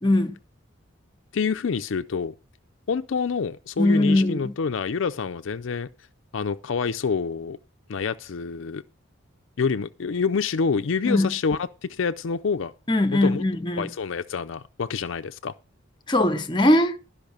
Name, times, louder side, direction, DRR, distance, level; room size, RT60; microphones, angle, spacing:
voice 1, 0.0-0.4 3.8-4.5 11.0-11.3 12.9-13.9 16.1-17.0, left 1 dB, 20° left, 0.8 m, -21 dB
voice 2, 1.3-2.3 2.9-5.9 6.3-7.6 7.9-8.8 9.6-12.7 13.1-13.4 13.8-15.5, left 5 dB, 65° left, 0.4 m, -27 dB
12.0 x 5.6 x 6.8 m
head